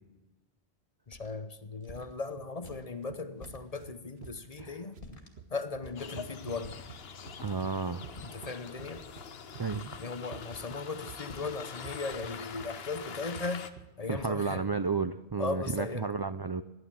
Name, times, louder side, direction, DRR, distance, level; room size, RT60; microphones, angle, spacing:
sound 1, 1.1-1.3 1.8-2.1 2.6-2.8 3.4-3.6 4.2-4.4 5.0-5.4 5.8-6.1 6.6-6.9 7.4-7.7 8.1-8.5 8.9-9.2 9.7-10.1 10.5-10.8 11.2-11.5 12.1-12.4, left 1 dB, 55° left, 2.5 m, -49 dB
voice 1, 1.1-5.0 5.5-6.7 8.2-9.1 10.0-13.7 14.0-14.7 15.4-16.1, left 3 dB, 40° left, 1.0 m, -37 dB
sound 2, 2.0-15.0, right 6 dB, 75° right, 1.3 m, -50 dB
sound 3, 6.0-13.7, left 6 dB, 70° left, 1.1 m, -44 dB
voice 2, 7.4-8.0 9.6-9.9 14.1-16.6, right 4 dB, 40° right, 0.4 m, -32 dB
16.0 x 11.0 x 7.4 m
omnidirectional pair, 1.1 m